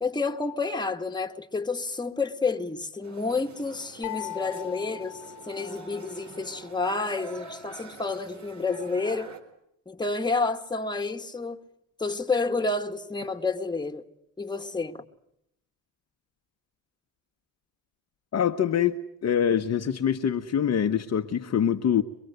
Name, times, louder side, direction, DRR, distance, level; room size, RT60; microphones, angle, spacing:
voice 1, 0.0-5.2 5.5-9.3 9.9-11.6 12.0-14.0 14.4-15.0, left 3 dB, 10° left, 1.8 m, -29 dB
sound 1, 3.0-9.4, right 3 dB, 45° right, 3.8 m, -46 dB
sound 2, 4.0-6.2, left 15 dB, 90° left, 0.9 m, -39 dB
voice 2, 18.3-22.0, left 8 dB, 40° left, 1.2 m, -25 dB
24.0 x 22.5 x 8.1 m
supercardioid pair, 80°, 39 cm